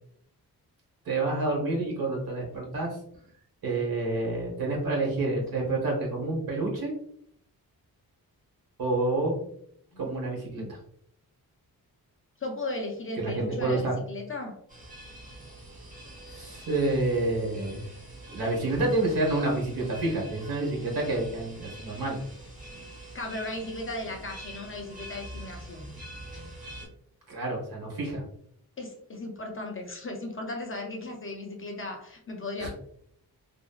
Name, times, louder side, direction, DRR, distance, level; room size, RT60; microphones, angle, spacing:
voice 1, 1.0-3.0 3.6-6.9 8.8-9.4 10.0-10.8 13.2-13.9 16.3-17.9 18.3-22.2 27.3-28.2 32.6-32.7, right 2 dB, 70° right, -1 dB, 1.2 m, -28 dB
voice 2, 12.4-14.6 23.1-25.9 28.8-32.7, left 2 dB, 35° left, 2 dB, 0.4 m, -36 dB
sound 1, 14.7-26.9, right 1 dB, 20° right, 0.9 m, -45 dB
2.9 x 2.6 x 2.3 m, 0.66 s
wide cardioid pair, 165°, 38 cm